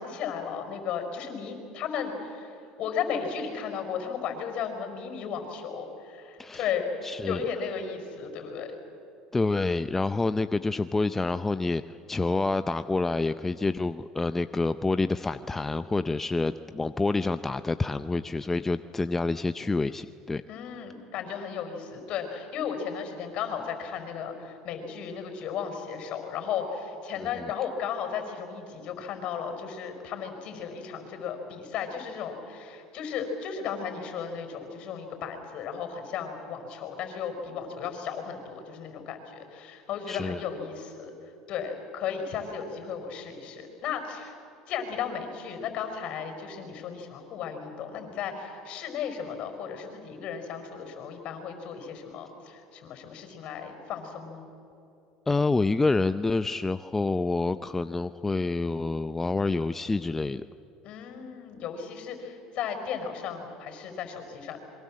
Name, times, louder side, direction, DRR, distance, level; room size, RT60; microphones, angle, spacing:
voice 1, 0.0-6.9 7.3-8.7 20.5-41.1 41.5-44.4 44.7-54.5 60.8-64.6, left 7 dB, 55° left, 6 dB, 5.1 m, -35 dB
voice 2, 7.0-7.4 9.3-20.4 27.2-27.3 40.1-40.4 55.3-60.4, left 3 dB, 15° left, 12 dB, 0.6 m, -27 dB
27.0 x 23.0 x 7.6 m, 2.9 s
supercardioid pair, 95°, 2 cm